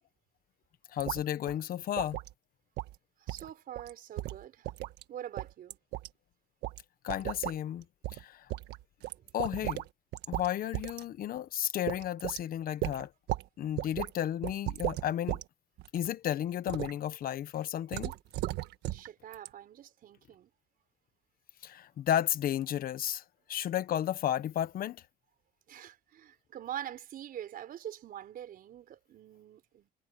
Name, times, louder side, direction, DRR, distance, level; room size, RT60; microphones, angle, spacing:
voice 1, 0.9-2.2 7.0-7.8 8.1-8.5 9.3-9.8 10.3-13.1 13.6-15.4 15.9-18.1 21.6-23.2 23.5-25.0, left 11 dB, 60° left, 1.2 m, -33 dB
sound 1, 1.0-1.2 1.5-1.6 2.0-2.3 2.8-3.0 3.3-3.5 3.8-3.9 4.2-5.0 5.4-6.1 6.6-6.8 7.1-7.6 8.0-8.2 8.5-9.9 10.1-10.5 10.7-11.0 11.4-11.5 11.9-12.4 12.8-13.5 13.8-14.1 14.4-15.4 15.8-16.1 16.7-16.9 17.9-19.1 19.3-19.5, right 15 dB, 85° right, 1.5 m, -36 dB
voice 2, 3.2-4.7 5.1-5.8 18.9-20.5 25.7-29.9, right 10 dB, 60° right, 4.7 m, -44 dB
cardioid pair, 110°, 17 cm